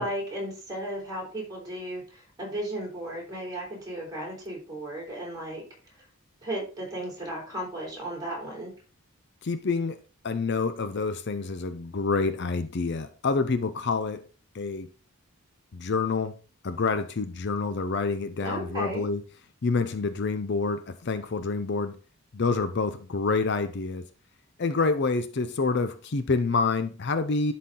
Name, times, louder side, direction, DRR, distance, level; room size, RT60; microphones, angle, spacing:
voice 1, 0.0-5.6 6.4-8.7 18.4-19.0, right 1 dB, 15° right, 3.8 m, -35 dB
voice 2, 9.4-14.2 14.5-14.9 15.7-16.4 16.6-19.2 19.6-22.0 22.3-24.1 24.6-27.5, left 4 dB, 50° left, 0.5 m, -27 dB
11.5 x 4.2 x 3.7 m
head